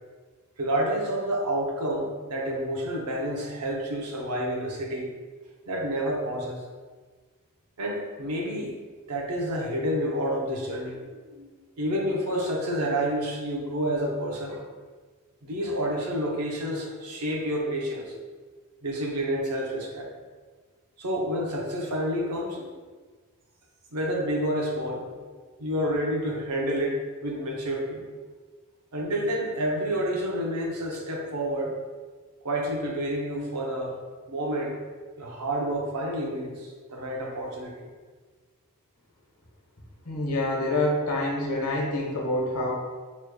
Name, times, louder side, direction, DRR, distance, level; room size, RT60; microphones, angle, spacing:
voice 1, 0.6-5.1 5.7-6.6 7.8-8.7 9.1-11.5 11.8-14.6 15.4-18.1 18.8-20.1 21.0-22.7 23.9-25.1 25.6-28.0 28.9-31.8 32.4-33.9 34.3-34.8 35.2-37.9, equal, 85° right, -1 dB, 0.7 m, -29 dB
voice 2, 40.1-42.7, left 1 dB, 80° left, -2 dB, 1.0 m, -26 dB
4.6 x 3.1 x 2.2 m, 1.5 s
head